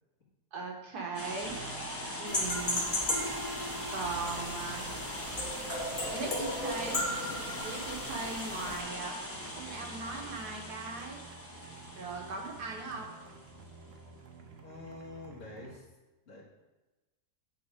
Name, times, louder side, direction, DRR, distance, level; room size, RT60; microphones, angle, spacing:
voice 1, 0.5-1.5 2.2-2.8 3.9-4.8 6.1-7.0 7.6-9.2 9.5-11.2 11.9-13.1, right 4 dB, 75° right, 0 dB, 1.7 m, -39 dB
sound 1, 1.1-13.7, left 1 dB, 10° left, 0.8 m, -41 dB
sound 2, 1.5-15.8, right 4 dB, 55° right, 0.8 m, -50 dB
sound 3, 2.3-8.8, left 1 dB, 30° left, 1.5 m, -36 dB
voice 2, 14.6-15.8 16.3-16.4, left 2 dB, 50° left, -10 dB, 2.1 m, -47 dB
8.7 x 4.1 x 4.8 m, 1.1 s
omnidirectional pair, 1.7 m